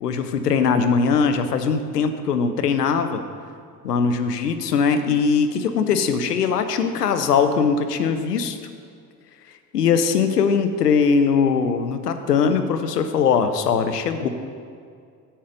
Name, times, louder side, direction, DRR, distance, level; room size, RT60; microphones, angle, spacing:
voice 1, 0.0-3.2 3.8-8.6 9.7-14.3, left 6 dB, 90° left, 9 dB, 0.6 m, -21 dB
8.7 x 7.3 x 5.1 m, 2.3 s
hypercardioid pair, 65°, 46 cm